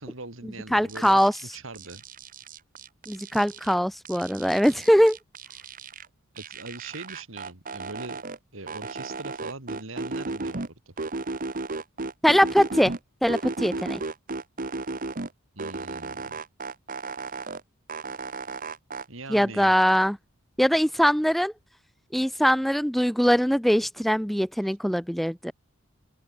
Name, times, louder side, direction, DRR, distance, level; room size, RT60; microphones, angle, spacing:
voice 1, 0.0-1.2 1.5-2.0 6.3-8.2 8.5-10.9 15.5-16.4 19.1-19.7, right 2 dB, 65° right, 3.2 m, -41 dB
voice 2, 0.7-1.3 3.1-5.2 12.2-12.9 13.2-14.0 19.3-20.2 20.6-21.5 22.1-25.5, equal, ahead, 0.5 m, -22 dB
sound 1, 0.9-1.4 1.7-3.7 4.0-6.1 6.4-8.4 8.7-10.7 11.0-13.0 13.3-15.3 15.6-17.6 17.9-19.0, right 3 dB, 40° right, 1.3 m, -34 dB
open air
head